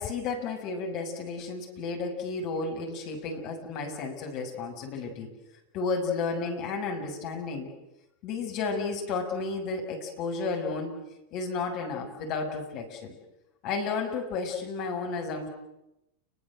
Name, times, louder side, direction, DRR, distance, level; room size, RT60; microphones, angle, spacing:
voice 1, 0.0-5.3 5.7-7.7 8.2-10.9 11.3-13.2 13.6-15.5, left 4 dB, 40° left, 2 dB, 6.9 m, -32 dB
30.0 x 22.5 x 7.8 m, 0.88 s
figure-of-eight pair, 90°, 0 cm